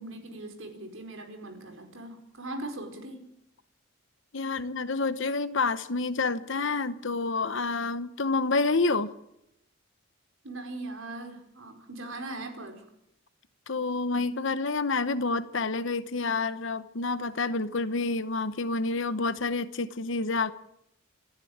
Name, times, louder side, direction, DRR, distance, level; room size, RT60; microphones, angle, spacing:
voice 1, 0.0-3.2 10.4-12.8, right 2 dB, 65° right, 4.8 m, -40 dB
voice 2, 4.3-9.1 13.7-20.5, left 3 dB, 60° left, 0.9 m, -28 dB
27.5 x 11.0 x 8.7 m
head